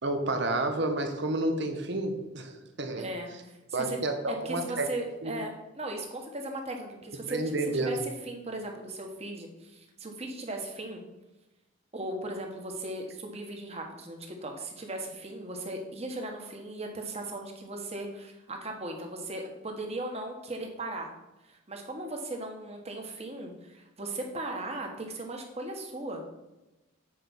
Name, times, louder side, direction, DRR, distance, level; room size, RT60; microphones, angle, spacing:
voice 1, 0.0-3.1 3.7-4.9 5.2-5.3 7.3-8.1, right 2 dB, 60° right, 6 dB, 1.1 m, -30 dB
voice 2, 3.0-3.6 3.9-7.4 7.7-11.0 11.9-21.1 21.5-26.2, right 2 dB, 30° right, 2 dB, 1.4 m, -37 dB
7.7 x 5.0 x 6.1 m, 1.0 s
head